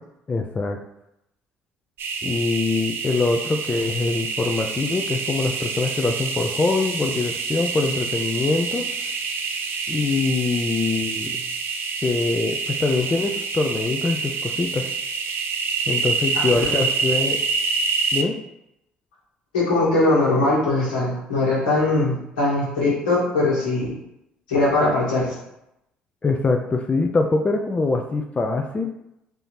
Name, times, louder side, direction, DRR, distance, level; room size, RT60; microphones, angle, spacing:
voice 1, 0.3-0.8 2.2-8.9 9.9-11.3 12.0-14.9 15.9-17.4 18.1-18.4 26.2-28.9, left 3 dB, 25° left, 3 dB, 0.4 m, -23 dB
sound 1, 2.0-18.2, right 5 dB, 55° right, 0.5 m, -27 dB
voice 2, 16.3-16.7 19.5-23.9 24.5-25.4, left 2 dB, 80° left, -6 dB, 1.6 m, -21 dB
3.4 x 2.7 x 4.3 m, 0.84 s
hypercardioid pair, 55°, 5 cm